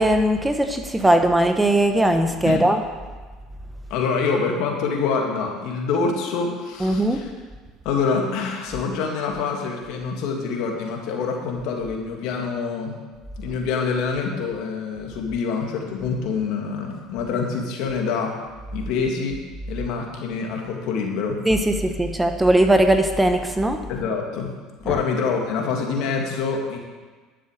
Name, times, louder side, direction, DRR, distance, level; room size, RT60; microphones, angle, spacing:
voice 1, 0.0-2.8 6.8-7.2 21.4-23.8 24.9-25.0, right 1 dB, 10° right, 6 dB, 1.1 m, -19 dB
voice 2, 3.9-7.3 7.8-12.9 13.4-18.3 18.7-19.4 19.7-21.4 23.9-24.5 24.8-26.8, left 5 dB, 70° left, 1 dB, 2.4 m, -26 dB
11.5 x 7.4 x 6.6 m, 1.4 s
supercardioid pair, 90°, 0 cm